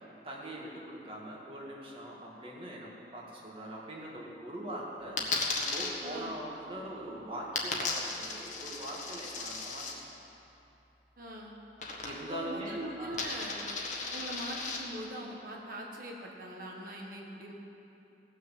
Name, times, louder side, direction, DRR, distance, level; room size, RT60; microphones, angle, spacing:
voice 1, 0.2-5.2 5.5-10.0 12.0-13.2, right 1 dB, 30° right, -3 dB, 2.0 m, -42 dB
Coin (dropping), 5.2-5.9 7.6-9.9 11.8-12.4 12.7-14.8, left 4 dB, 45° left, 1.5 m, -35 dB
voice 2, 6.0-6.4 11.2-11.5 12.0-13.6 14.1-17.5, right 1 dB, 50° right, -1 dB, 1.4 m, -42 dB
17.0 x 6.5 x 7.4 m, 2.9 s
head